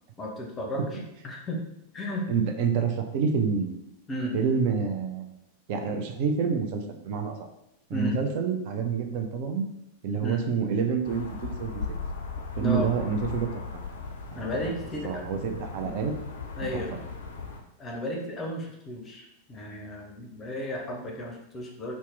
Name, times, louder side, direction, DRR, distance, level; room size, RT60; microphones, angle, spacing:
voice 1, 0.2-1.6 1.9-2.3 4.1-4.3 7.9-8.2 10.2-10.4 12.6-12.9 14.4-15.4 16.6-16.9 17.8-21.9, equal, 20° left, 0 dB, 0.6 m, -34 dB
voice 2, 2.3-3.7 4.3-5.3 5.7-7.3 7.9-9.7 10.0-11.8 12.6-13.8 14.3-14.5 15.0-16.1, right 6 dB, 45° right, 5 dB, 0.4 m, -28 dB
sound 1, 11.0-17.6, left 4 dB, 65° left, 0.4 m, -37 dB
2.8 x 2.1 x 3.2 m, 0.84 s
figure-of-eight pair, 90°, 0 cm